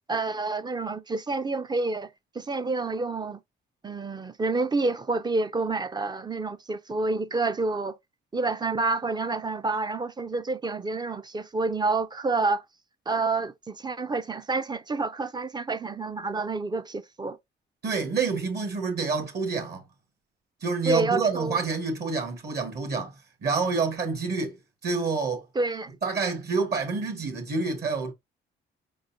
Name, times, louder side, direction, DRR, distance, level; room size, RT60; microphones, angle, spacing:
voice 1, 0.1-2.1 2.3-3.4 3.8-8.0 8.3-12.6 13.1-17.4 20.9-21.6 25.6-25.9, right 3 dB, 20° right, 0.4 m, -28 dB
voice 2, 17.8-19.8 20.6-24.6 24.8-25.4 26.0-28.1, right 4 dB, 55° right, 1.3 m, -28 dB
4.3 x 3.9 x 2.6 m
cardioid pair, 90°, 20 cm